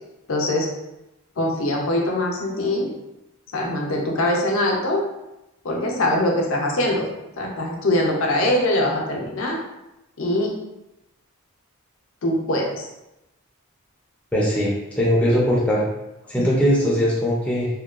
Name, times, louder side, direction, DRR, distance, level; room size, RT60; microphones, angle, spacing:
voice 1, 0.3-0.7 1.4-2.9 3.5-5.0 5.6-7.1 7.4-9.6 10.2-10.5 12.2-12.9 16.4-16.5, left 1 dB, 65° left, -1 dB, 0.5 m, -22 dB
voice 2, 14.3-15.8 16.3-17.7, equal, 5° left, -6 dB, 0.3 m, -20 dB
2.8 x 2.1 x 2.3 m, 0.92 s
head